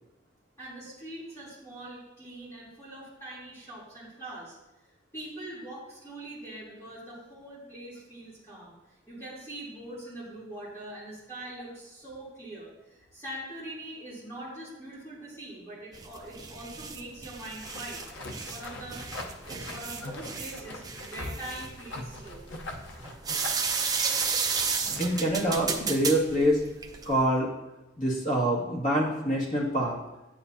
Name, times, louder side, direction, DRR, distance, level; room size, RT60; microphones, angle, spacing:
voice 1, 0.6-4.6 5.1-18.0 18.3-22.4, right 1 dB, 15° left, -10 dB, 3.2 m, -43 dB
sound 1, 15.9-27.2, right 5 dB, 20° right, 0.6 m, -33 dB
sound 2, 17.6-25.8, left 2 dB, 75° left, 0.9 m, -42 dB
voice 2, 25.0-26.6 27.0-27.5 28.0-30.0, equal, 40° left, -5 dB, 2.2 m, -25 dB
9.1 x 8.5 x 2.8 m, 1.0 s
head